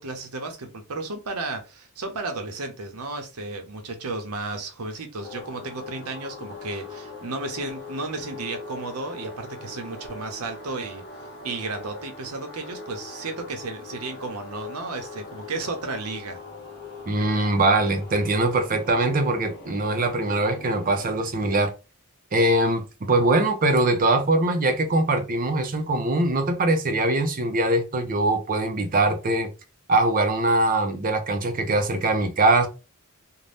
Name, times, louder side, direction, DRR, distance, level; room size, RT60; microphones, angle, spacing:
voice 1, 0.0-11.0 11.4-16.4, right 3 dB, 85° right, 0.7 m, -33 dB
sound 1, 5.2-21.1, left 3 dB, 50° left, 0.9 m, -41 dB
voice 2, 17.1-21.7 22.3-22.8 23.1-29.5 29.9-32.7, right 2 dB, 40° right, 0.5 m, -22 dB
2.6 x 2.1 x 3.3 m
head